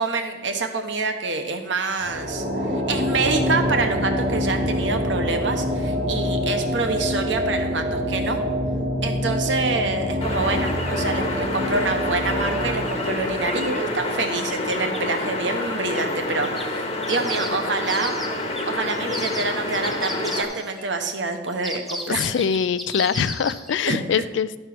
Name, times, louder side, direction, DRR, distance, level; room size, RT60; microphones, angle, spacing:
voice 1, 0.0-2.4 2.7-8.4 9.0-18.2 18.7-22.3 23.9-24.0, right 3 dB, 70° right, 6 dB, 0.9 m, -26 dB
sound 1, 2.0-14.6, equal, 45° right, 1.2 m, -26 dB
sound 2, 10.2-20.4, left 2 dB, 35° left, 1.1 m, -28 dB
sound 3, 10.2-10.3 10.6-11.1 12.3-13.9 14.5-15.1 15.9-16.1 16.4-20.8 21.5-23.7, equal, ahead, 0.8 m, -36 dB
voice 2, 22.1-24.6, left 7 dB, 70° left, 16 dB, 0.4 m, -23 dB
11.5 x 4.5 x 5.9 m, 1.2 s
head